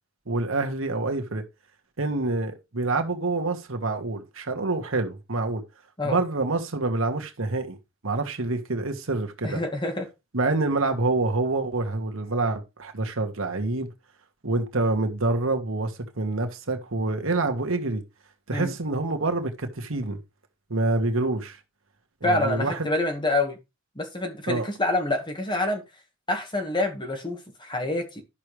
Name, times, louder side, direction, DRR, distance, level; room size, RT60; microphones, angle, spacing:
voice 1, 0.3-1.4 2.0-5.6 6.0-7.8 8.0-9.6 10.3-13.9 14.4-18.0 18.5-20.2 20.7-21.6 22.2-22.8 24.5-24.7, right 2 dB, 75° right, 1.5 m, -27 dB
voice 2, 9.4-10.1 18.5-18.7 22.2-23.6 24.0-25.8 26.3-28.2, left 2 dB, 25° left, 1.7 m, -27 dB
11.5 x 6.2 x 3.3 m
head